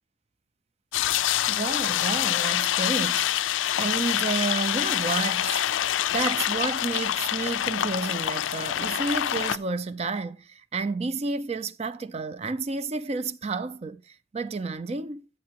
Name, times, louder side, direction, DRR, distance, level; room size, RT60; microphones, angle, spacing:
sound 1, 0.9-9.6, left 12 dB, 80° left, 0.4 m, -26 dB
voice 1, 1.5-15.3, right 3 dB, 30° right, 0.4 m, -31 dB
11.5 x 7.6 x 2.9 m
head